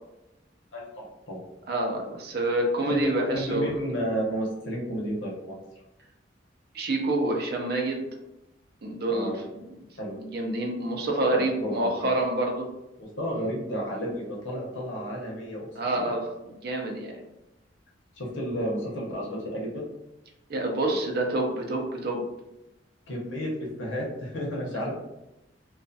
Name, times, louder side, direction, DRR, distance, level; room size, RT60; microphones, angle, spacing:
voice 1, 0.7-1.4 2.8-5.6 9.1-9.4 10.0-10.1 11.3-12.1 13.0-15.7 15.9-16.1 18.2-19.8 23.1-24.9, equal, 90° left, -3 dB, 0.7 m, -32 dB
voice 2, 1.7-3.7 6.7-8.0 8.8-9.3 10.2-12.7 15.8-16.2 16.6-17.1 20.5-22.2 24.7-24.9, right 2 dB, 55° right, 1 dB, 0.5 m, -27 dB
2.5 x 2.3 x 2.5 m, 0.95 s
head